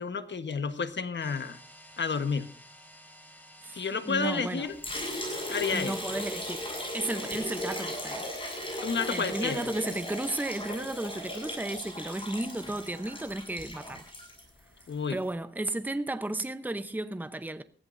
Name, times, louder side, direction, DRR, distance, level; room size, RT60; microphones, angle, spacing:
voice 1, 0.0-1.6 2.0-2.5 3.7-4.7 5.5-5.9 8.8-9.7 14.9-15.2, left 5 dB, 75° left, 1.2 m, -30 dB
sound 1, 1.2-10.6, equal, 10° left, 4.3 m, -54 dB
voice 2, 3.6-4.7 5.7-8.3 9.1-14.0 15.1-17.6, right 1 dB, 10° right, 0.7 m, -34 dB
Liquid, 4.8-14.9, equal, 30° left, 7.5 m, -37 dB
20.5 x 15.0 x 2.6 m
wide cardioid pair, 90°, 19 cm